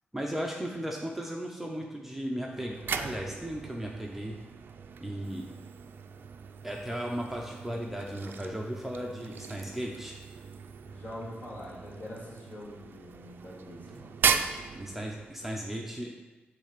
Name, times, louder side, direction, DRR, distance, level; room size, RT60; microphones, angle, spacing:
voice 1, 0.1-4.4 5.0-5.5 6.6-10.2 14.7-16.1, equal, 5° right, -1 dB, 0.6 m, -36 dB
sound 1, 2.5-15.5, right 6 dB, 65° right, 0.4 m, -37 dB
voice 2, 10.8-14.1, left 1 dB, 50° left, -6 dB, 2.2 m, -44 dB
8.7 x 3.3 x 6.5 m, 1.2 s
wide cardioid pair, 170°, 4 cm